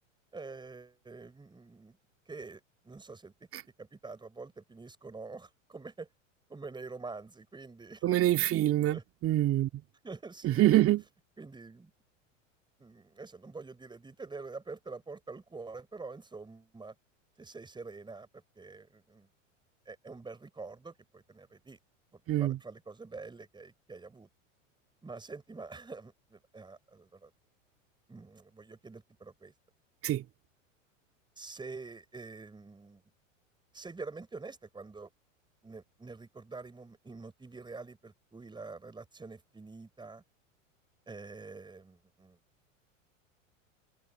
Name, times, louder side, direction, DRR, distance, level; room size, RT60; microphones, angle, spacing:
voice 1, 0.3-2.0 2.3-3.3 3.8-6.1 6.5-8.0 8.9-9.0 10.0-10.7 11.4-11.9 12.8-16.9 17.4-18.3 18.6-19.3 19.9-21.8 22.1-24.3 25.0-27.3 28.1-29.5 31.4-33.0 33.7-35.1 35.6-40.2 41.1-42.4, right 3 dB, 10° right, 5.3 m, -46 dB
voice 2, 8.0-9.7 10.4-11.0 22.3-22.6 30.0-30.2, right 14 dB, 35° right, 2.0 m, -25 dB
hypercardioid pair, 95°, 39 cm